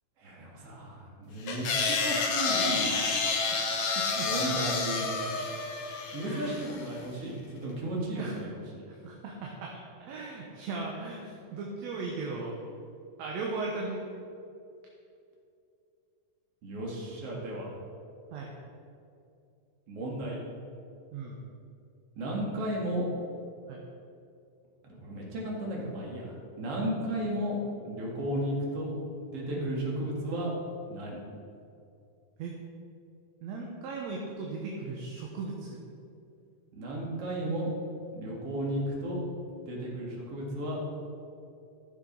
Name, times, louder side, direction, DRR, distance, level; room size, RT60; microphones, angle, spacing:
voice 1, 0.2-1.7 2.0-3.0 4.2-5.4 6.1-8.8 16.6-17.7 19.9-20.4 22.2-23.1 24.8-27.6 27.8-28.9 29.3-30.5 30.9-31.2 36.7-37.7 38.1-39.2 39.7-40.8, right 1 dB, 50° right, -3 dB, 3.0 m, -34 dB
sound 1, 1.5-6.8, left 4 dB, 55° left, 1.5 m, -29 dB
voice 2, 4.0-4.3 6.2-6.6 8.2-8.4 9.0-12.6 13.2-14.0 18.3-18.5 21.1-21.4 23.7-23.8 29.6-29.7 32.4-32.5 33.4-35.8, right 3 dB, 70° right, -2 dB, 2.2 m, -37 dB
14.5 x 6.5 x 5.3 m, 2.6 s
omnidirectional pair, 3.5 m